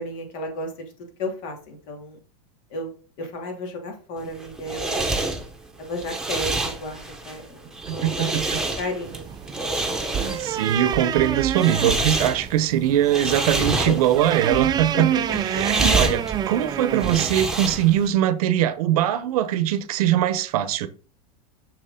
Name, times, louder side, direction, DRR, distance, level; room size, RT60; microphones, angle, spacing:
voice 1, 0.0-2.2 2.7-2.9 3.2-5.0 5.8-9.6 13.9-14.0 14.9-15.7, left 1 dB, 60° left, 2.9 m, -33 dB
sound 1, 4.2-18.1, right 2 dB, 5° right, 1.1 m, -28 dB
voice 2, 7.9-8.6 10.1-15.1 15.4-20.9, right 11 dB, 75° right, 1.0 m, -22 dB
sound 2, 9.0-17.7, right 9 dB, 20° right, 0.6 m, -28 dB
6.9 x 6.3 x 3.8 m
supercardioid pair, 140°, 19 cm